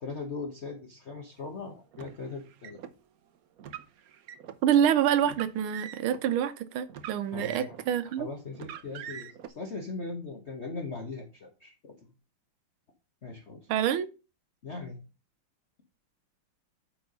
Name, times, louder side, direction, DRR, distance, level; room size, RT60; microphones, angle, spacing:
voice 1, 0.0-2.8 7.3-7.8 8.2-11.9 13.2-13.6 14.6-15.0, left 3 dB, 40° left, 1.2 m, -39 dB
Car, 1.9-2.9 3.6-4.6 5.2-6.2 6.9-8.0 8.5-9.5, right 9 dB, 65° right, 0.9 m, -43 dB
voice 2, 4.6-8.3 13.7-14.1, right 9 dB, 85° right, 1.6 m, -26 dB
8.7 x 4.7 x 5.2 m
omnidirectional pair, 2.3 m